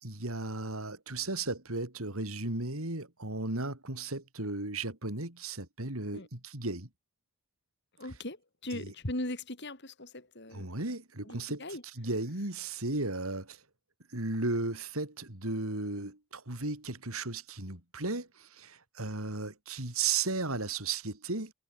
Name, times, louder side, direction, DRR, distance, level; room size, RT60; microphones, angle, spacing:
voice 1, 0.0-6.9 8.0-8.1 8.7-8.9 10.5-13.6 14.1-21.5, right 3 dB, 80° right, 4.3 m, -35 dB
voice 2, 8.0-8.4 8.6-10.7 11.3-11.8, left 1 dB, 55° left, 4.2 m, -39 dB
head